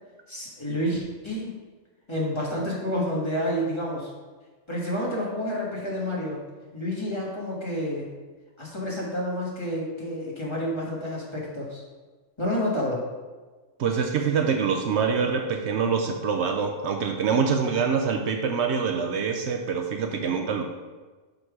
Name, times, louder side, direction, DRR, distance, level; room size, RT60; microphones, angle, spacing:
voice 1, 0.3-1.5 2.1-4.1 4.7-6.4 6.7-8.1 8.6-11.8 12.4-13.0, equal, 25° left, -5 dB, 1.6 m, -29 dB
voice 2, 13.8-20.6, right 6 dB, 70° right, 4 dB, 0.9 m, -25 dB
5.9 x 5.1 x 4.8 m, 1.3 s
omnidirectional pair, 1.3 m